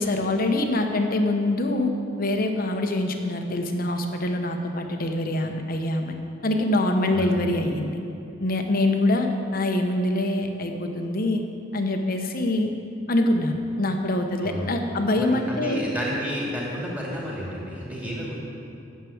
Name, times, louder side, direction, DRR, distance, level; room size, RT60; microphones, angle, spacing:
voice 1, 0.0-1.9 2.2-6.1 6.4-8.0 8.4-11.4 11.7-12.7 13.1-15.9, left 1 dB, 45° left, 5 dB, 0.9 m, -24 dB
voice 2, 15.1-18.4, equal, 10° right, -5 dB, 2.3 m, -31 dB
9.3 x 7.5 x 7.1 m, 2.6 s
head